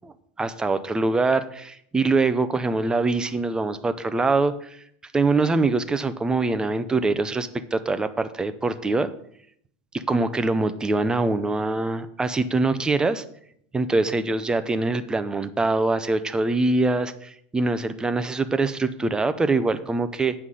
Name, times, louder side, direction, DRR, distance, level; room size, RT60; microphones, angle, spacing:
voice 1, 0.0-4.8 5.1-9.1 9.9-13.2 13.7-20.3, right 3 dB, 10° right, 11 dB, 0.5 m, -24 dB
8.2 x 5.6 x 6.2 m, 0.67 s
supercardioid pair, 145°, 8 cm